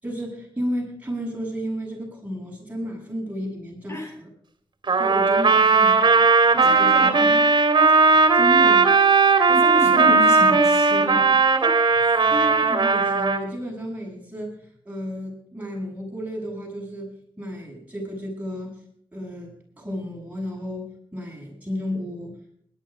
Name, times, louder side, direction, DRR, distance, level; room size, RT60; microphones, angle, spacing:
voice 1, 0.0-4.3 5.0-6.2 6.6-7.4 7.9-8.9 12.2-18.7 19.1-22.4, equal, 15° right, 0 dB, 7.8 m, -32 dB
Trumpet, 4.9-13.4, right 4 dB, 60° right, 2.7 m, -17 dB
voice 2, 6.5-7.5 9.5-11.3 11.6-12.2, equal, 30° left, 4 dB, 4.4 m, -30 dB
20.5 x 11.5 x 5.2 m, 0.65 s
wide cardioid pair, 75°, 9 cm